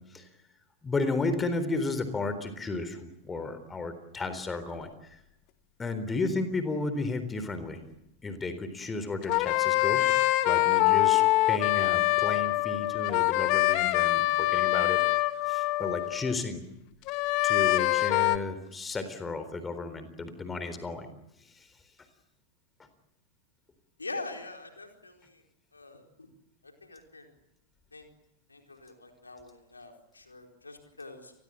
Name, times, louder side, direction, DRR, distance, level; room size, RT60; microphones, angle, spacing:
voice 1, 0.8-5.2 5.8-7.8 8.2-10.0 10.5-15.2 15.5-16.6 17.4-21.1 21.4-21.7, left 3 dB, 15° left, 10 dB, 3.9 m, -33 dB
sound 1, 9.2-16.4 17.1-18.4, left 18 dB, 40° left, 1.5 m, -25 dB
voice 2, 24.0-25.4 25.7-26.3 26.6-27.3 27.9-28.1 28.5-31.3, left 3 dB, 80° left, 4 dB, 4.4 m, -44 dB
29.0 x 21.0 x 8.9 m, 0.82 s
figure-of-eight pair, 90°, 0 cm